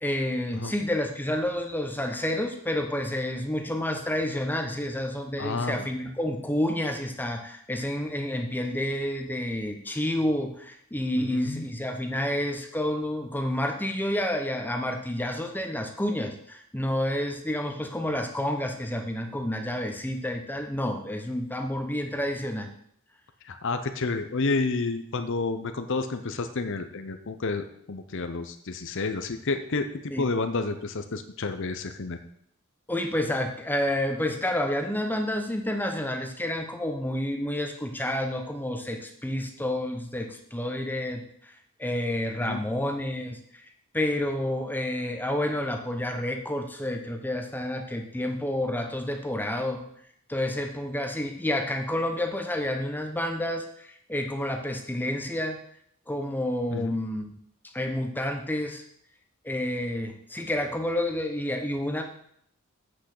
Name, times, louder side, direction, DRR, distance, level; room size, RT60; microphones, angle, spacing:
voice 1, 0.0-22.7 30.1-30.2 32.9-41.5 41.8-43.4 43.9-49.8 50.3-55.6 56.1-57.4 57.7-58.8 59.4-62.0, left 1 dB, 10° left, 4 dB, 0.9 m, -29 dB
voice 2, 5.4-5.9 11.2-11.6 23.4-32.2 42.4-42.6 56.7-56.9, left 3 dB, 60° left, 8 dB, 0.8 m, -30 dB
8.2 x 6.3 x 6.6 m, 0.69 s
head